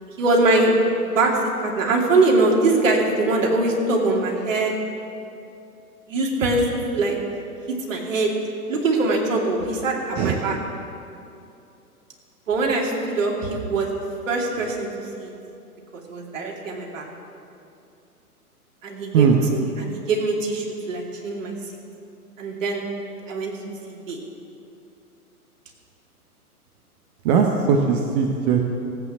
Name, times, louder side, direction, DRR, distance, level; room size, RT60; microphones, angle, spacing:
voice 1, 0.2-0.7 1.0-4.7 6.1-7.2 7.7-8.3 8.7-10.6 12.5-13.9 14.3-14.9 15.2-15.3 15.9-17.1 18.8-21.5 22.4-22.9 23.3-23.6 23.9-24.2, right 2 dB, 55° right, 0 dB, 2.8 m, -22 dB
voice 2, 27.2-28.6, right 6 dB, 30° right, 2 dB, 0.9 m, -19 dB
15.5 x 8.7 x 7.3 m, 2.6 s
figure-of-eight pair, 115°, 46 cm